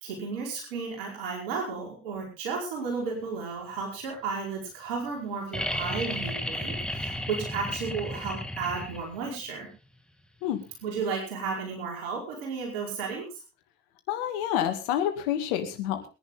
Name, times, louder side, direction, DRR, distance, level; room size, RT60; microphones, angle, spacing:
voice 1, 0.0-9.7 10.8-13.4, right 5 dB, 80° right, 0 dB, 5.0 m, -33 dB
sound 1, 5.5-9.3 11.0-11.1, left 1 dB, 5° left, 2.2 m, -33 dB
voice 2, 14.1-16.1, left 10 dB, 80° left, 7 dB, 2.3 m, -28 dB
22.0 x 11.0 x 3.8 m, 0.30 s
hypercardioid pair, 50°, 29 cm